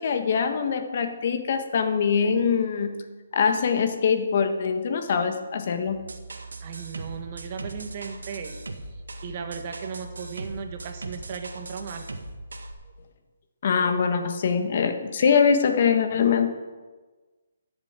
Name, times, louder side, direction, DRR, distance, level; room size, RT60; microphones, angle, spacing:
voice 1, 0.0-3.0 3.3-6.0 13.6-16.5, left 6 dB, 50° left, 7 dB, 1.4 m, -23 dB
sound 1, 5.9-12.7, right 2 dB, 85° right, 1.7 m, -39 dB
voice 2, 6.6-8.6 9.2-12.2, right 6 dB, 40° right, 5 dB, 1.6 m, -36 dB
13.5 x 7.2 x 8.1 m, 1.3 s
hypercardioid pair, 155°, 0 cm